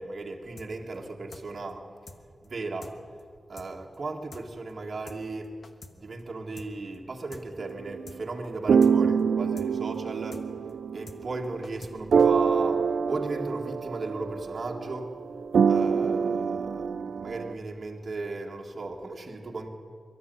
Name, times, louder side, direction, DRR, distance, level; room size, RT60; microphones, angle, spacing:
voice 1, 0.0-1.9 2.4-2.9 3.5-5.5 5.9-10.5 10.9-15.1 15.7-19.7, right 3 dB, 40° right, 0 dB, 2.0 m, -36 dB
sound 1, 0.6-0.7 0.9-1.0 1.3-1.4 1.7-1.8 2.1-2.2 2.4-2.5 2.8-2.9 3.2-3.3 3.6-3.7 3.9-4.0 4.3-4.4 4.7-4.8 5.1-5.2 5.4-5.9 6.2-6.3 6.6-6.7 6.9-7.0 7.3-7.4 7.7-7.8 8.1-8.2 8.4-8.5 8.8-8.9 9.2-9.3 9.6-9.7 9.9-10.0 10.3-10.4 10.7-10.8 11.1-11.2 11.4-11.9 12.2-12.3, left 3 dB, 50° left, 1.3 m, -46 dB
sound 2, 7.6-11.8 12.1-17.5, right 6 dB, 70° right, 0.5 m, -25 dB
22.5 x 12.0 x 9.4 m, 2.1 s
wide cardioid pair, 135°, 0 cm